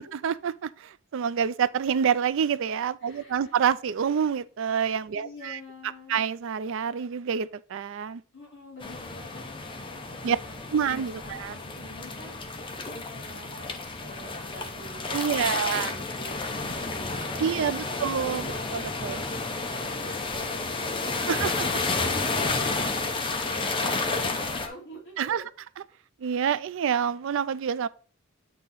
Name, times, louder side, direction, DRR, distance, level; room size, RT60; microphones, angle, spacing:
voice 1, 0.0-5.6 6.1-8.2 10.2-10.4 10.7-11.5 15.1-15.9 17.4-19.2 21.3-21.8 23.8-24.0 25.2-25.5 26.2-27.9, right 7 dB, 65° right, 0.4 m, -27 dB
voice 2, 3.0-3.6 5.1-6.2 8.3-10.6 10.8-12.4 12.8-19.5 19.8-25.2, equal, 65° left, 2.6 m, -47 dB
sound 1, 8.8-24.7, left 3 dB, 25° left, 0.7 m, -31 dB
8.3 x 2.9 x 5.4 m
head